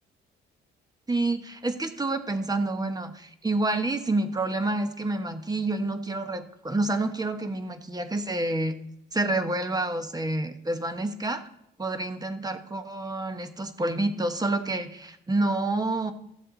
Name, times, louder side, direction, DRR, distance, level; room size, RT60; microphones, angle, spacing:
voice 1, 1.1-8.8 9.1-11.4 11.8-16.1, right 2 dB, 20° right, 8 dB, 1.2 m, -28 dB
14.5 x 7.5 x 4.0 m, 0.75 s
cardioid pair, 90°, 20 cm